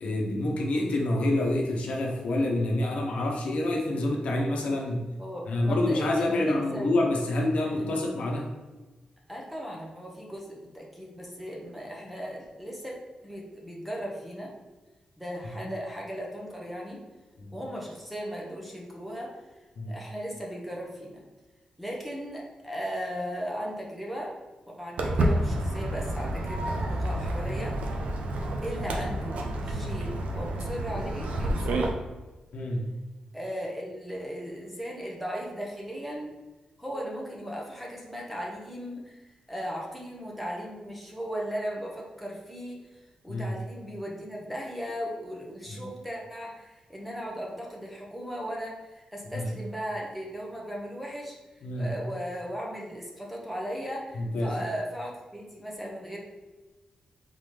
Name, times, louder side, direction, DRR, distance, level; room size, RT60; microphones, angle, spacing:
voice 1, 0.0-5.0 5.5-8.5 15.6-15.7 17.4-17.5 19.8-19.9 32.5-32.8 43.3-43.5 45.7-45.8 49.3-49.5 51.6-51.9 54.1-54.5, left 1 dB, 70° left, -1 dB, 0.8 m, -27 dB
voice 2, 5.2-6.9 7.8-8.0 9.3-12.9 13.2-14.5 15.2-17.0 17.5-19.3 19.9-21.2 21.8-24.4 24.8-27.8 28.6-31.8 33.3-36.3 36.8-39.2 39.5-42.8 43.2-51.4 51.7-56.2, equal, ahead, -3 dB, 0.8 m, -37 dB
Walk footsteps, 25.0-31.9, right 1 dB, 85° right, 0.6 m, -29 dB
3.9 x 3.7 x 3.3 m, 1.2 s
wide cardioid pair, 155°, 2 cm